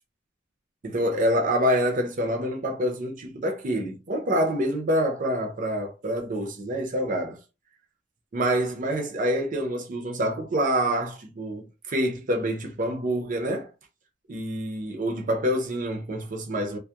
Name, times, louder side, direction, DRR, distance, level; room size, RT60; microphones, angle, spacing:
voice 1, 0.8-7.4 8.3-13.7 14.3-16.8, equal, 45° right, 0.5 m, -26 dB
2.3 x 2.0 x 2.7 m
head